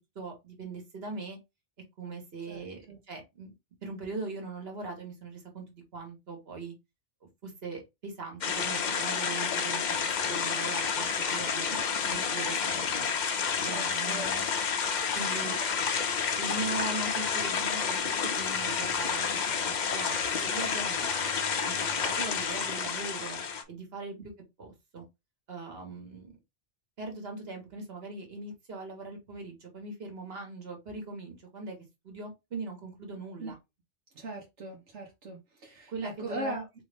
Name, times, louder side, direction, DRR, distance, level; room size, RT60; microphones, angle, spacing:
voice 1, 0.1-1.4 2.0-3.5 3.8-6.7 7.4-11.7 12.1-13.1 13.6-14.4 15.1-15.6 16.4-19.3 19.6-21.3 21.6-23.4 23.7-24.3 24.6-25.1 25.5-26.4 27.0-31.8 32.0-33.6 35.9-36.6, right 3 dB, 55° right, 3 dB, 1.6 m, -40 dB
voice 2, 2.5-3.0 11.7-12.2 13.6-14.3 15.4-15.6 33.4-33.5 34.1-36.7, right 2 dB, 80° right, 0 dB, 1.3 m, -40 dB
sound 1, 8.4-23.6, left 6 dB, 50° left, 0.6 m, -30 dB
3.8 x 3.1 x 3.4 m, 0.22 s
omnidirectional pair, 1.2 m